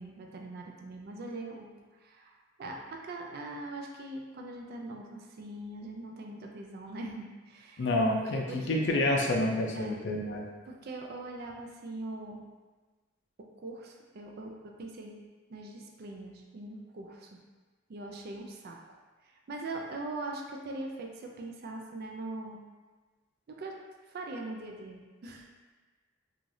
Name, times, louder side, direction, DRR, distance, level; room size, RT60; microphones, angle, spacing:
voice 1, 0.0-1.7 2.0-7.9 8.2-8.8 9.7-10.0 10.7-12.4 13.4-15.2 15.5-17.3 17.9-19.0 19.2-22.6 23.5-23.8 24.1-25.5, right 2 dB, 55° right, 1 dB, 0.4 m, -42 dB
voice 2, 7.8-10.5, left 1 dB, 65° left, 0 dB, 0.4 m, -28 dB
3.2 x 2.4 x 2.6 m, 1.3 s
head